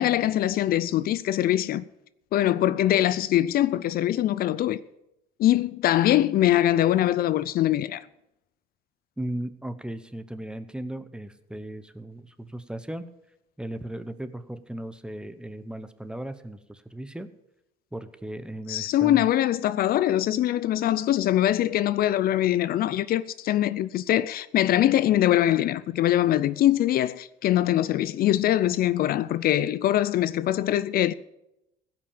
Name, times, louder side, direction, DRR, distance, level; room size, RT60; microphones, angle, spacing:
voice 1, 0.0-1.8 2.3-4.8 5.4-8.0 18.7-31.1, left 13 dB, 60° left, 0.5 m, -23 dB
voice 2, 9.2-13.0 13.6-17.3 17.9-19.3, right 1 dB, 5° right, 0.9 m, -36 dB
16.0 x 5.9 x 8.8 m
cardioid pair, 110°, 17 cm